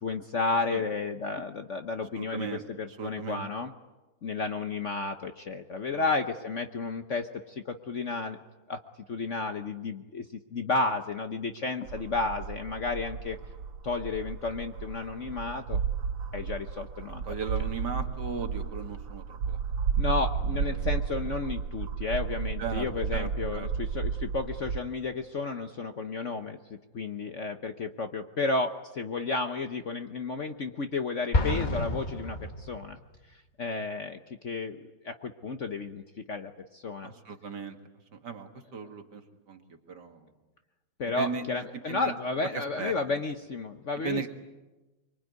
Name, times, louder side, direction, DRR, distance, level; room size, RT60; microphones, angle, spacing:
voice 1, 0.0-2.5 2.8-3.7 4.2-8.4 8.7-8.8 9.1-10.3 10.5-13.4 13.8-15.8 16.3-17.2 19.9-33.0 33.6-36.0 36.3-37.1 41.0-44.3, left 3 dB, 45° left, 7 dB, 1.1 m, -32 dB
voice 2, 2.2-3.5 5.9-6.0 17.1-19.8 20.4-20.9 22.6-23.7 37.0-37.8 38.1-40.3 41.2-42.1 42.5-43.2 44.0-44.3, right 5 dB, 60° right, 5 dB, 2.5 m, -38 dB
sound 1, 11.9-24.8, right 6 dB, 85° right, 2.0 m, -33 dB
Explosion, 31.3-33.2, left 2 dB, 25° left, 1.3 m, -29 dB
24.5 x 24.0 x 9.4 m, 1.1 s
omnidirectional pair, 2.1 m